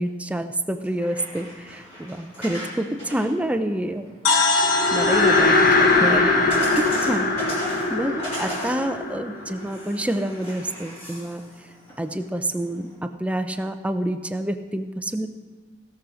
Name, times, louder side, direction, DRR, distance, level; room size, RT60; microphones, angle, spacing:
voice 1, 0.0-4.1 4.9-7.3 7.9-11.4 12.0-15.3, right 1 dB, 5° right, 8 dB, 0.4 m, -28 dB
sound 1, 0.7-12.9, equal, 30° left, 4.7 m, -38 dB
sound 2, 4.2-8.2, left 3 dB, 80° left, 1.1 m, -25 dB
sound 3, 4.6-10.0, left 3 dB, 45° left, 1.1 m, -21 dB
16.5 x 6.3 x 6.2 m, 1.4 s
head